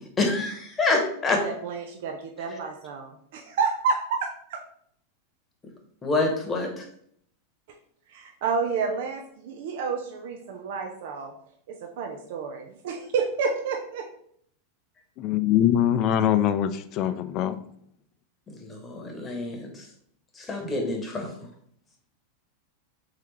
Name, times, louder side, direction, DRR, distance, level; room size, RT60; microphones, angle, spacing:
voice 1, 0.0-1.4 6.0-6.8 18.5-19.7 20.4-21.3, left 3 dB, 20° left, 2 dB, 1.1 m, -27 dB
voice 2, 1.4-4.6 8.1-11.3 11.7-14.1, right 5 dB, 65° right, 3 dB, 0.5 m, -30 dB
voice 3, 15.2-17.6 20.6-20.7, left 10 dB, 45° left, 11 dB, 0.4 m, -23 dB
3.7 x 3.3 x 3.2 m, 0.65 s
hypercardioid pair, 105°, 0 cm